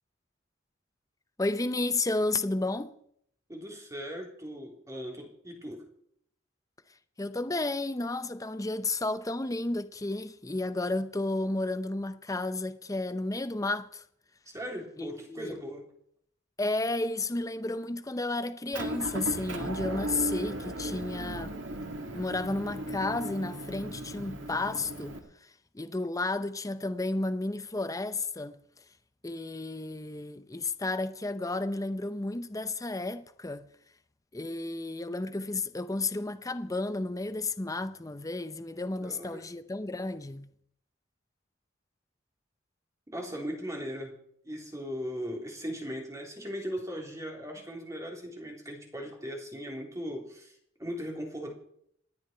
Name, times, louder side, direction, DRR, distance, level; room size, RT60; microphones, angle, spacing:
voice 1, 1.4-3.0 7.2-14.0 15.0-15.6 16.6-21.6 22.1-28.6 29.2-33.7 34.3-40.5, left 2 dB, 15° left, 0.6 m, -32 dB
voice 2, 3.5-5.8 14.5-15.9 39.0-39.4 43.1-44.2 44.4-51.5, equal, 15° right, 3.5 m, -38 dB
Motor vehicle (road) / Engine, 18.7-25.2, right 1 dB, 70° right, 2.3 m, -36 dB
28.0 x 9.4 x 4.5 m
head